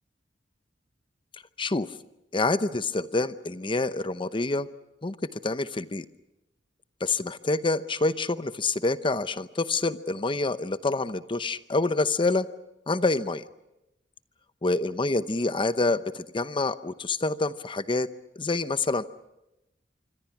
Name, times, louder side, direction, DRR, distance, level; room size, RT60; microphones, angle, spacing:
voice 1, 2.3-4.7 5.0-5.1 5.4-6.0 7.0-12.5 12.9-13.4 14.6-18.1 18.4-19.0, left 3 dB, 25° left, 13 dB, 0.8 m, -27 dB
26.0 x 25.0 x 6.0 m, 0.91 s
head